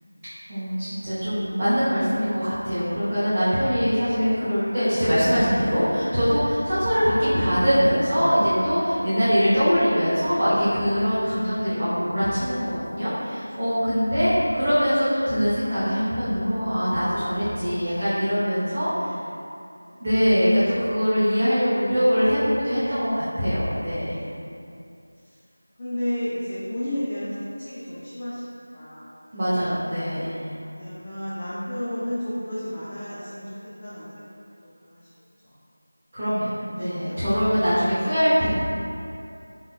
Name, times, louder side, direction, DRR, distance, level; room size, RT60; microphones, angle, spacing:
voice 1, 0.5-18.9 20.0-24.1 29.3-30.5 36.1-38.5, equal, 20° right, -17 dB, 0.9 m, -22 dB
voice 2, 13.3-13.8 18.9-19.5 24.0-24.7 25.2-25.4 25.8-28.4 28.7-29.1 30.7-33.4 33.8-34.3 34.6-35.0 35.4-35.6 37.0-37.2, left 1 dB, 20° left, -11 dB, 0.4 m, -33 dB
4.7 x 3.1 x 2.3 m, 2.5 s
figure-of-eight pair, 175°, 0 cm